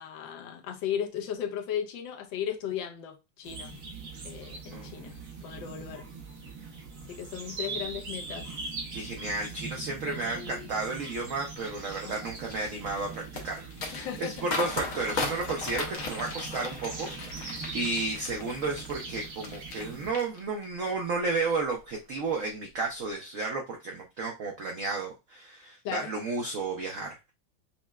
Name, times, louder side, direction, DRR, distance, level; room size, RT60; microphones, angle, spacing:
voice 1, 0.0-3.8 4.2-5.1 5.4-6.1 7.1-8.7 10.0-10.7 12.0-12.3 13.9-14.5 25.8-26.1, left 9 dB, 80° left, 1.3 m, -36 dB
sound 1, 3.4-20.1, right 4 dB, 55° right, 1.0 m, -41 dB
voice 2, 4.7-5.2 8.9-27.3, right 3 dB, 75° right, 0.7 m, -33 dB
sound 2, 11.6-19.8 20.1-20.8 21.2-21.5, left 3 dB, 65° left, 0.8 m, -37 dB
5.4 x 2.1 x 2.2 m
omnidirectional pair, 2.1 m